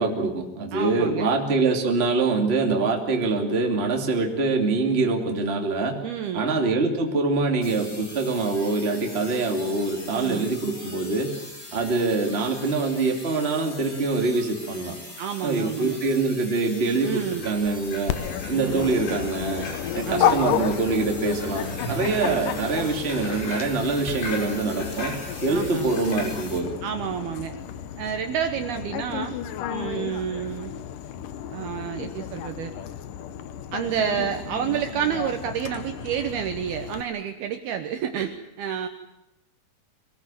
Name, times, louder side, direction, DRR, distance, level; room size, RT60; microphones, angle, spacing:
voice 1, 0.0-6.0 6.3-11.3 11.7-15.0 15.4-18.1 18.5-19.7 19.9-25.1 25.4-26.7, right 3 dB, 20° right, 2 dB, 2.0 m, -24 dB
voice 2, 0.7-1.3 6.0-6.5 10.1-10.5 15.2-16.0 17.0-17.5 18.5-18.9 20.1-20.5 22.0-22.4 25.5-25.9 26.8-27.5 28.0-29.4 29.7-30.7 31.5-32.7 33.7-38.9, right 9 dB, 70° right, 6 dB, 2.6 m, -29 dB
sound 1, 7.6-26.6, left 1 dB, 20° left, 3.7 m, -42 dB
sound 2, 17.4-26.7, left 1 dB, 65° left, 8.3 m, -38 dB
Dog, 18.1-37.0, left 10 dB, 85° left, 1.9 m, -32 dB
23.5 x 19.5 x 9.2 m, 0.86 s
omnidirectional pair, 5.4 m